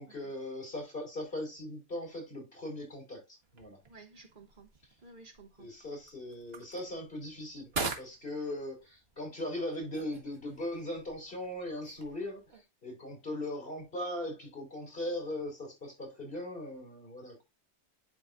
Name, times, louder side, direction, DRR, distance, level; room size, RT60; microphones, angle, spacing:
voice 1, 0.0-3.8 5.6-7.7 8.0-17.4, left 1 dB, 55° left, 3.5 m, -39 dB
sound 1, 3.4-12.6, right 4 dB, 65° right, 1.6 m, -45 dB
voice 2, 3.9-4.7 5.0-5.7, right 3 dB, 50° right, 1.1 m, -54 dB
11.0 x 3.9 x 2.4 m
omnidirectional pair, 1.1 m